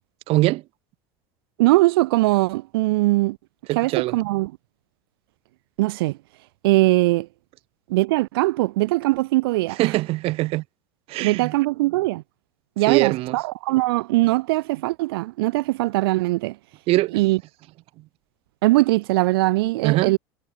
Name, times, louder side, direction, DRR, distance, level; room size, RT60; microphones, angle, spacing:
voice 1, 0.3-0.6 3.7-4.2 9.8-10.6 11.1-11.5 12.9-13.4 16.9-17.2 19.8-20.1, right 19 dB, 55° right, 0.8 m, -22 dB
voice 2, 1.6-3.4 3.8-4.5 5.8-6.2 6.6-7.3 7.9-9.9 11.2-12.2 12.8-16.6 17.1-17.4 18.6-20.2, right 20 dB, 85° right, 0.4 m, -21 dB
supercardioid pair, 110°, 12 cm